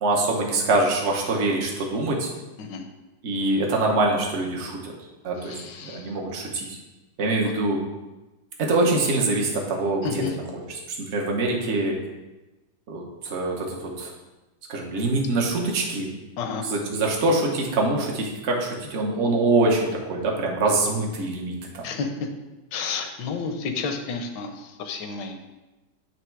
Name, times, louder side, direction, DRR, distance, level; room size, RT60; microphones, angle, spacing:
voice 1, 0.0-2.3 3.2-4.9 5.2-6.8 7.2-7.8 8.6-10.6 11.0-11.9 12.9-14.1 14.7-16.1 16.7-21.8, right 2 dB, 45° right, -1 dB, 1.2 m, -24 dB
voice 2, 5.4-6.1 10.0-10.3 16.4-16.7 21.8-22.3 22.7-25.4, left 5 dB, 75° left, 6 dB, 1.4 m, -31 dB
9.2 x 3.3 x 4.6 m, 1.1 s
omnidirectional pair, 1.9 m